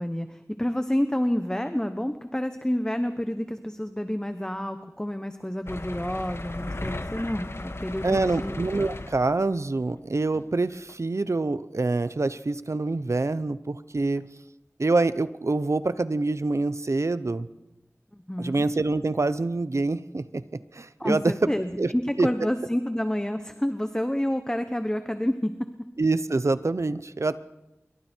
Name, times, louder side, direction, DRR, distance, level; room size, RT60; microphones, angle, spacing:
voice 1, 0.0-8.6 18.1-18.7 21.0-25.5, equal, 15° left, 8 dB, 1.2 m, -29 dB
sound 1, 5.7-9.6 10.3-10.5 10.9-11.0, left 2 dB, 55° left, 1.3 m, -36 dB
voice 2, 8.0-14.3 14.8-17.5 18.4-21.5 21.8-21.9 22.2-22.3 26.0-27.4, right 3 dB, 75° right, 14 dB, 0.9 m, -26 dB
28.0 x 23.0 x 4.6 m, 0.97 s
wide cardioid pair, 50°, 5 cm